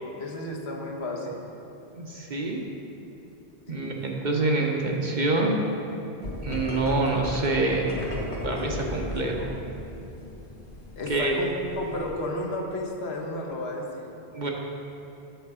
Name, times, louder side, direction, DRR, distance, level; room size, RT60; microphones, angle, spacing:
voice 1, 0.2-1.4 3.7-4.0 11.0-14.1, left 1 dB, 70° left, 0 dB, 1.2 m, -33 dB
voice 2, 1.9-2.6 3.7-5.6 6.4-8.0 8.4-9.5 11.1-11.4 14.3-14.5, right 2 dB, 50° right, 0 dB, 0.8 m, -26 dB
sound 1, 6.2-12.1, left 1 dB, 90° left, 1.5 m, -36 dB
7.9 x 6.4 x 4.8 m, 3.0 s
omnidirectional pair, 1.1 m